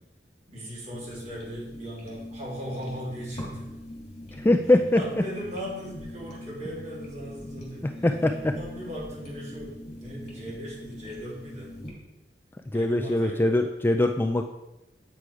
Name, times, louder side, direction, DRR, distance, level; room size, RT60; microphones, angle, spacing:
voice 1, 0.5-3.7 4.9-8.1 8.6-9.7 10.0-11.7 12.7-13.6, equal, 40° right, -6 dB, 3.3 m, -38 dB
sound 1, 0.9-11.9, left 1 dB, 40° left, 2.8 m, -42 dB
voice 2, 4.4-5.0 8.0-8.5 12.7-14.4, left 1 dB, 10° left, 5 dB, 0.3 m, -22 dB
8.4 x 6.2 x 4.8 m, 0.95 s
head